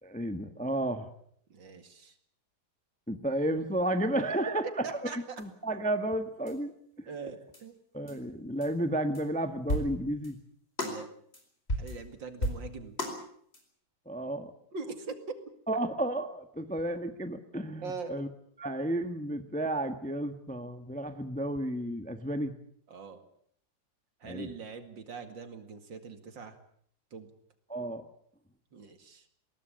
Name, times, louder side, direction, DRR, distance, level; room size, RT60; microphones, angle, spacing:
voice 1, 0.0-1.1 3.1-4.7 5.1-6.7 7.0-7.1 7.9-10.4 14.1-14.5 15.7-18.3 18.6-22.5 24.2-24.5 27.7-28.0, right 1 dB, 5° left, 8 dB, 1.0 m, -32 dB
voice 2, 1.5-2.2 4.8-5.4 7.1-7.8 10.8-11.1 11.8-13.0 14.7-15.2 17.8-18.1 22.9-23.2 24.2-26.6 27.1-27.3 28.7-29.3, right 4 dB, 65° right, 8 dB, 2.9 m, -42 dB
sound 1, 5.4-5.5 6.5-6.6 7.5-7.6 8.1-8.2 8.6-8.7 9.1-9.2 9.7-10.3 10.8-11.1 11.3-11.4 11.7-12.1 12.4-13.2 13.5-13.6, equal, 30° left, 5.0 m, -34 dB
21.0 x 18.0 x 8.8 m, 0.65 s
omnidirectional pair, 2.2 m